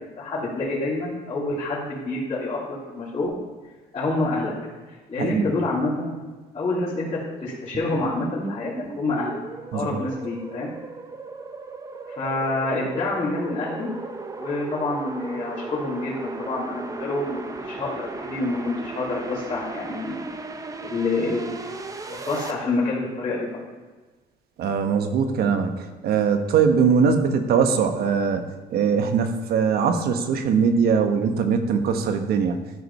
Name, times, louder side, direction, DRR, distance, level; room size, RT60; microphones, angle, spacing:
voice 1, 0.2-3.3 3.9-4.5 4.9-6.2 6.5-9.4 9.7-10.7 12.1-13.9 14.4-20.2 20.8-21.5 22.1-23.6, left 2 dB, 35° left, -11 dB, 3.2 m, -27 dB
sound 1, 7.7-22.5, right 3 dB, 20° right, 0.8 m, -36 dB
voice 2, 24.6-28.4 28.7-32.6, right 6 dB, 65° right, 7 dB, 1.1 m, -21 dB
12.5 x 5.1 x 5.5 m, 1.3 s
cardioid pair, 110°, 17 cm